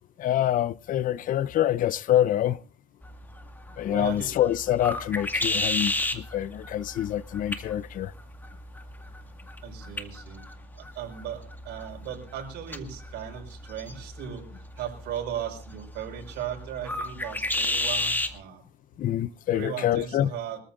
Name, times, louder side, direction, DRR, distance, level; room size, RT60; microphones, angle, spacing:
voice 1, 0.2-2.6 3.8-8.1 19.0-20.3, left 12 dB, 55° left, 0.6 m, -26 dB
sound 1, 3.0-18.4, left 2 dB, 10° left, 2.0 m, -34 dB
voice 2, 3.9-4.3 9.6-10.4 10.7-14.5 14.8-18.6 19.5-20.6, right 9 dB, 80° right, 5.2 m, -37 dB
25.0 x 14.0 x 2.6 m
cardioid pair, 110°, 17 cm